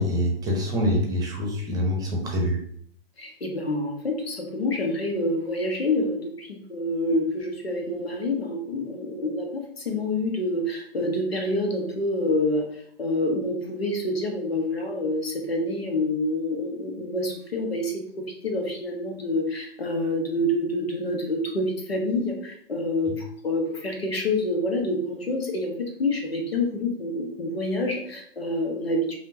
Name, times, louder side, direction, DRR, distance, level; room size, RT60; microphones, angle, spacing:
voice 1, 0.0-2.6, left 1 dB, 10° right, 0 dB, 0.9 m, -25 dB
voice 2, 3.2-18.0 18.4-29.1, left 1 dB, 80° left, 2 dB, 1.2 m, -27 dB
5.2 x 2.8 x 2.7 m, 0.65 s
figure-of-eight pair, 120°, 30 cm